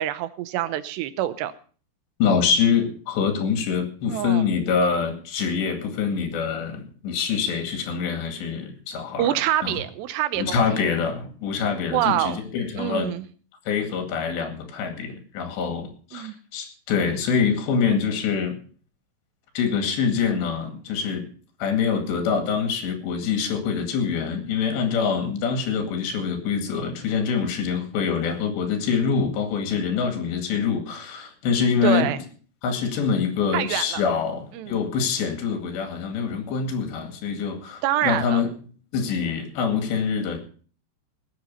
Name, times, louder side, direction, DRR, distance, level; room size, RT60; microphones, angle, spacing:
voice 1, 0.0-1.5 4.1-4.4 4.9-5.0 9.2-10.8 11.9-12.4 12.8-13.3 16.1-16.4 31.8-32.2 33.5-34.0 34.5-34.8 37.8-38.4, right 12 dB, 90° right, 14 dB, 3.0 m, -26 dB
voice 2, 2.2-9.3 9.6-9.8 10.3-13.1 13.7-18.6 19.6-21.3 21.6-32.1 32.6-38.5 38.9-40.4, left 6 dB, 85° left, 5 dB, 4.4 m, -25 dB
19.0 x 8.0 x 5.5 m, 0.42 s
omnidirectional pair, 4.9 m